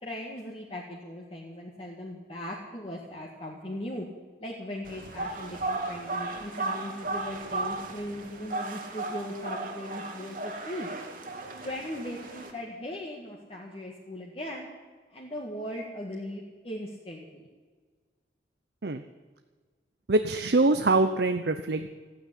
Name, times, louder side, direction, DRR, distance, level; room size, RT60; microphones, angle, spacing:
voice 1, 0.0-4.1 4.4-10.9 11.6-14.7 15.1-17.5, left 1 dB, 30° left, -2 dB, 1.7 m, -38 dB
sound 1, 4.8-12.5, right 2 dB, 45° right, 2.0 m, -35 dB
voice 2, 20.1-21.9, right 2 dB, 65° right, 9 dB, 0.7 m, -24 dB
14.5 x 9.4 x 9.9 m, 1.5 s
head